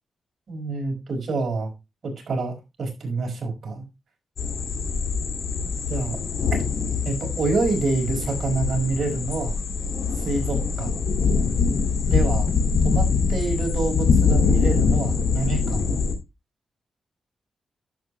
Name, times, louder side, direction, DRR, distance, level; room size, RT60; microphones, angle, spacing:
voice 1, 0.5-1.7 2.0-3.8 5.6-6.2 7.0-9.6 10.2-11.0 12.1-12.5 12.8-16.0, right 3 dB, 60° right, 2 dB, 5.0 m, -27 dB
sound 1, 4.4-16.1, left 5 dB, 85° left, 2.1 m, -23 dB
10.5 x 8.0 x 3.1 m, 0.24 s
cardioid pair, 100°, 0 cm